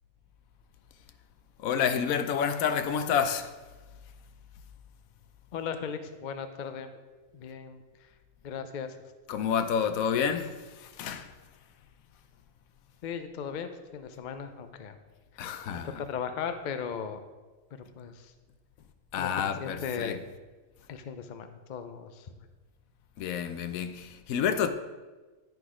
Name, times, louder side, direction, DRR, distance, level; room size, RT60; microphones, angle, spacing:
voice 1, 1.6-3.6 9.3-11.3 15.4-16.0 19.1-20.2 23.2-24.7, left 7 dB, 80° left, 1.0 m, -29 dB
voice 2, 5.5-6.9 7.3-7.8 8.4-8.9 13.0-15.0 16.1-17.2 17.9-18.3 19.1-19.3 19.6-20.2 20.9-22.3, left 7 dB, 60° left, 0.5 m, -37 dB
10.5 x 4.0 x 4.9 m
omnidirectional pair, 1.5 m